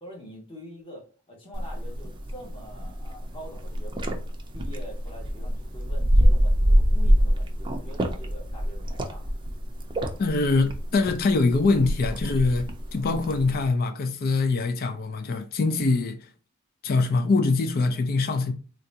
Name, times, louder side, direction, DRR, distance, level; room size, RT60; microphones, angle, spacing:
voice 1, 0.0-4.2 4.5-9.3 15.6-15.8, equal, 25° left, 1.2 m, -45 dB
sound 1, 1.5-13.7, equal, 25° right, 0.5 m, -25 dB
voice 2, 10.2-16.2 16.8-18.5, left 3 dB, 45° left, 0.4 m, -23 dB
3.8 x 2.3 x 2.7 m
head